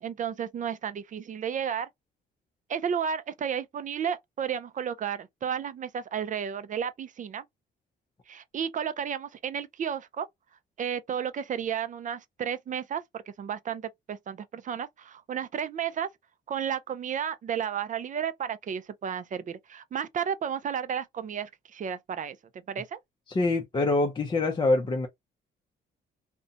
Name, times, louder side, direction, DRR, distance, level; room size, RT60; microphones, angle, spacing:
voice 1, 0.0-1.9 2.7-7.4 8.3-10.3 10.8-16.1 16.5-22.4 22.7-23.0, right 8 dB, 40° right, 0.4 m, -32 dB
voice 2, 23.3-25.1, left 2 dB, 25° left, 0.5 m, -25 dB
2.5 x 2.1 x 2.5 m
cardioid pair, 90°, 20 cm